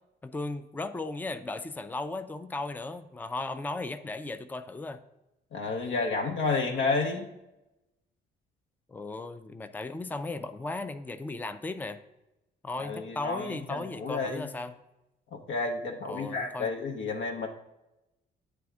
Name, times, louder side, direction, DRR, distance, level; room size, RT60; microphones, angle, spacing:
voice 1, 0.2-5.0 8.9-12.0 12.6-14.7 16.1-16.7, left 2 dB, 10° left, 10 dB, 0.4 m, -36 dB
voice 2, 5.5-7.3 12.8-14.5 15.3-17.5, left 3 dB, 70° left, 2 dB, 0.7 m, -31 dB
8.4 x 3.4 x 4.9 m, 0.96 s
cardioid pair, 90°, 20 cm